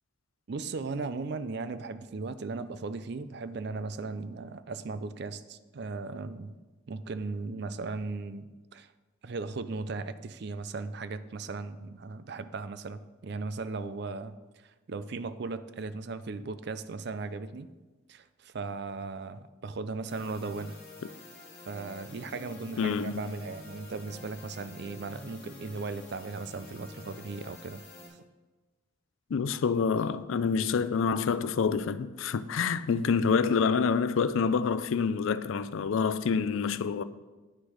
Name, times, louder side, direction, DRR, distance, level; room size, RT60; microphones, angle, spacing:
voice 1, 0.5-6.6 6.9-8.9 9.2-14.4 14.9-17.7 18.1-20.8 21.7-27.8 32.9-33.1, right 3 dB, 50° right, 0.4 m, -37 dB
sound 1, 20.1-28.1, left 2 dB, 30° left, 2.6 m, -48 dB
voice 2, 22.8-23.3 29.3-37.0, left 5 dB, 70° left, 0.4 m, -27 dB
9.6 x 6.2 x 4.9 m
head